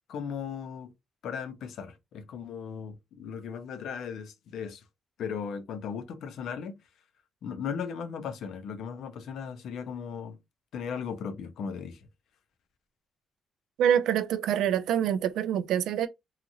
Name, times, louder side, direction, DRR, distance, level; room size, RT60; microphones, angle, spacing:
voice 1, 0.1-0.9 1.2-4.8 5.2-6.7 7.4-10.4 10.7-12.0, left 6 dB, 75° left, 0.5 m, -37 dB
voice 2, 13.8-16.1, right 9 dB, 85° right, 0.3 m, -25 dB
2.8 x 2.4 x 2.6 m
cardioid pair, 90°, 0 cm